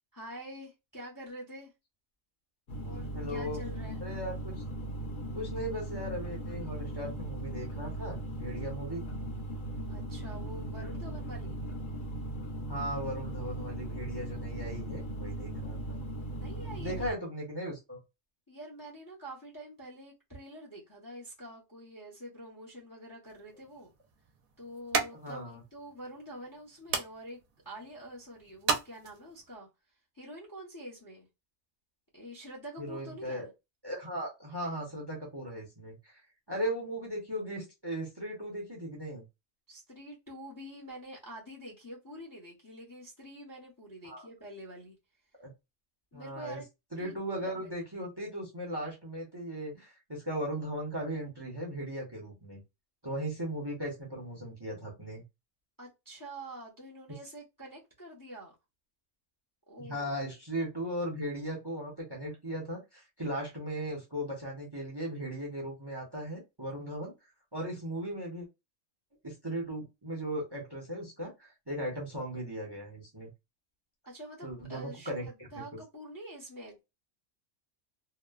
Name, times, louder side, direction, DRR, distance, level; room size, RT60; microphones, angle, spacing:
voice 1, 0.1-1.7 2.8-4.0 9.9-11.6 16.3-17.0 18.5-23.9 24.6-27.4 27.6-29.7 30.1-31.3 32.1-33.5 39.7-45.0 46.1-46.7 47.0-48.0 55.8-58.5 59.7-60.1 74.0-76.8, equal, 20° left, 0.6 m, -46 dB
sound 1, 2.7-17.1, right 1 dB, 45° left, 0.8 m, -38 dB
voice 2, 3.1-3.6 4.0-4.5 5.3-9.0 12.7-16.0 16.8-18.0 25.1-25.6 32.8-33.5 33.8-36.2 36.5-39.2 44.0-44.2 45.4-45.5 46.1-46.6 46.9-52.6 53.0-55.2 59.8-67.1 67.5-68.5 69.2-73.3 74.4-75.6, equal, 25° right, 0.7 m, -37 dB
sound 2, 23.2-29.5, right 5 dB, 85° right, 1.1 m, -37 dB
2.9 x 2.1 x 2.2 m
omnidirectional pair, 1.4 m